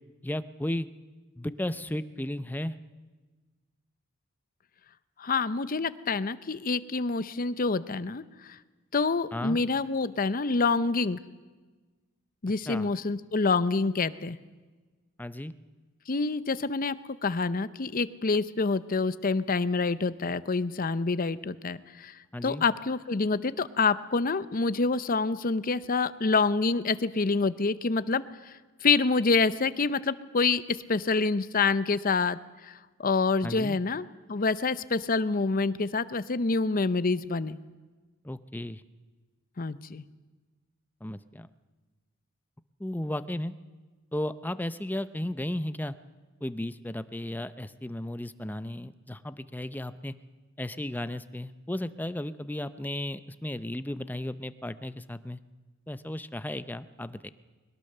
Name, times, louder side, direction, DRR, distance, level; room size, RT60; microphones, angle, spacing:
voice 1, 0.2-0.9 1.4-2.8 9.3-9.6 12.7-12.9 15.2-15.5 22.3-22.6 33.4-33.8 38.2-38.8 41.0-41.5 42.8-43.5 44.1-45.9 46.4-50.1 50.6-55.4 55.9-57.3, left 1 dB, 10° left, 13 dB, 0.6 m, -34 dB
voice 2, 5.2-8.6 8.9-11.2 12.4-14.4 16.1-17.0 17.2-28.5 28.8-32.4 32.6-37.6 39.6-40.0, left 4 dB, 45° left, 15 dB, 0.7 m, -27 dB
21.5 x 20.0 x 6.7 m, 1.3 s
head